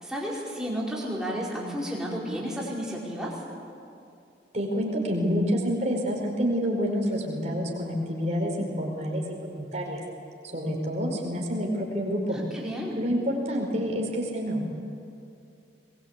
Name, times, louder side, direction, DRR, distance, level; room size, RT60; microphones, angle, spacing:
voice 1, 0.0-3.4 12.3-13.0, equal, 5° right, -5 dB, 4.9 m, -32 dB
voice 2, 4.5-10.0 10.5-12.4 12.9-14.7, equal, 40° right, 0 dB, 4.9 m, -28 dB
22.0 x 22.0 x 8.4 m, 2.5 s
head